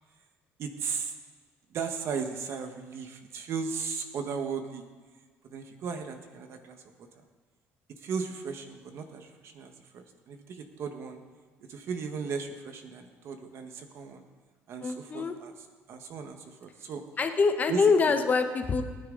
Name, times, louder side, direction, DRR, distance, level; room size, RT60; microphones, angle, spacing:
voice 1, 0.6-1.1 1.7-4.8 5.4-7.1 8.0-11.2 11.7-14.2 14.7-17.0 17.7-17.8 18.1-18.2, right 5 dB, 60° right, 6 dB, 1.5 m, -36 dB
voice 2, 14.8-15.3 17.2-18.8, left 4 dB, 35° left, 7 dB, 1.1 m, -25 dB
19.0 x 9.8 x 4.0 m, 1.4 s
cardioid pair, 115°, 5 cm